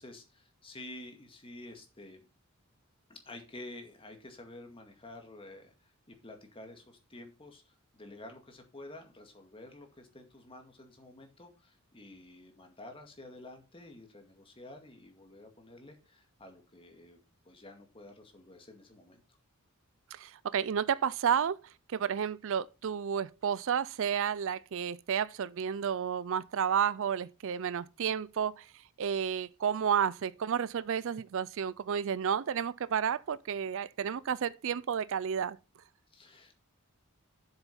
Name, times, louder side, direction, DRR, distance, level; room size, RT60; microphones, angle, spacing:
voice 1, 0.0-2.2 3.1-17.2 17.5-19.2 36.1-36.5, left 2 dB, 25° left, 2.1 m, -50 dB
voice 2, 20.1-21.6 21.9-28.7 29.0-35.6, right 8 dB, 60° right, 0.4 m, -31 dB
7.8 x 7.1 x 5.5 m
head